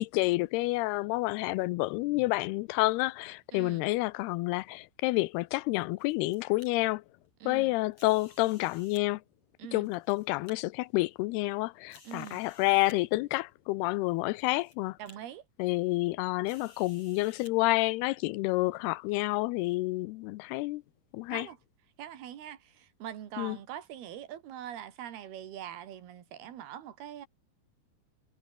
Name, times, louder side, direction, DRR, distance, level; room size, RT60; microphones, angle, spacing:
voice 1, 0.0-7.0 7.5-9.2 9.7-15.0 15.6-20.8 21.1-21.5 23.4-23.6, left 21 dB, 90° left, 2.7 m, -29 dB
voice 2, 3.5-3.8 7.4-7.8 9.6-9.9 12.1-12.4 15.0-15.4 21.3-21.6 22.0-27.3, right 10 dB, 75° right, 4.1 m, -43 dB
sound 1, 6.0-6.7 7.9-9.0 9.7-10.5 11.2-11.3 11.9-13.0 13.9-14.0 14.4-14.7 15.1-15.2 16.4-17.5, left 3 dB, 40° left, 8.0 m, -56 dB
omnidirectional pair, 4.6 m